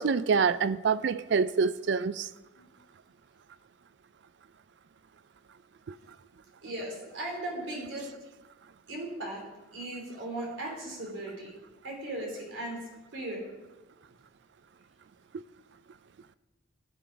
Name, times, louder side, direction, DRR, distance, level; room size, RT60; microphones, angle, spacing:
voice 1, 0.0-2.3, right 5 dB, 60° right, 0.4 m, -26 dB
voice 2, 6.6-8.1 8.9-9.4 9.7-11.5 11.8-12.8 13.1-13.5, right 1 dB, 85° right, 3.4 m, -37 dB
12.0 x 7.0 x 5.1 m
head